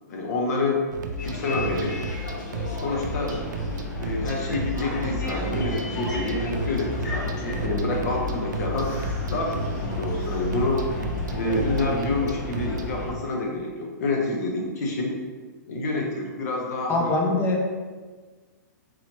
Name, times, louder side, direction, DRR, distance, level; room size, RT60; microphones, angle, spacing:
voice 1, 0.1-0.8 1.2-2.0 2.6-3.4 4.0-8.9 9.3-10.8 11.3-15.1 15.7-17.1, left 2 dB, 60° left, -1 dB, 0.9 m, -28 dB
sound 1, 0.9-12.9, right 1 dB, 80° right, 0.5 m, -33 dB
Bus, 1.2-13.1, left 1 dB, 85° left, 1.0 m, -32 dB
sound 2, 8.7-12.2, left 2 dB, 40° left, 1.2 m, -36 dB
voice 2, 16.9-17.7, left 2 dB, 20° left, 1 dB, 0.5 m, -23 dB
4.0 x 2.9 x 3.0 m, 1.4 s
hypercardioid pair, 145°, 10 cm